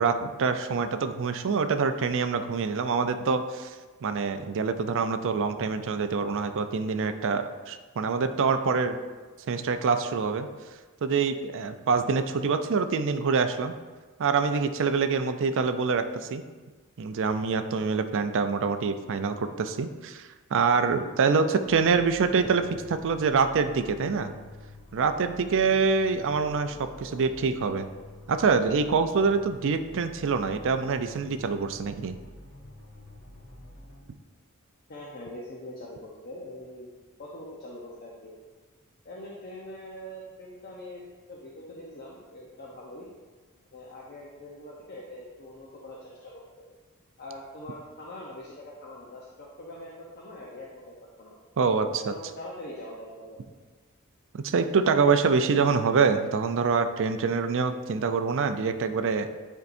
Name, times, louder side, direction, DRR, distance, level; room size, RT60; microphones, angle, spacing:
voice 1, 0.0-3.7 4.0-9.0 9.5-10.5 11.0-13.7 14.2-16.1 16.3-16.4 17.0-24.3 24.9-27.8 28.3-32.1 51.6-52.1 54.4-59.3, right 5 dB, 60° right, 9 dB, 0.4 m, -25 dB
sound 1, 21.6-34.0, left 1 dB, 65° left, 1.7 m, -48 dB
voice 2, 26.7-27.7 34.9-36.9 37.2-38.3 39.0-41.0 41.3-43.0 43.7-46.7 47.2-51.4 52.0-53.4, left 1 dB, 45° left, -4 dB, 0.8 m, -43 dB
9.6 x 4.5 x 2.6 m, 1.3 s
head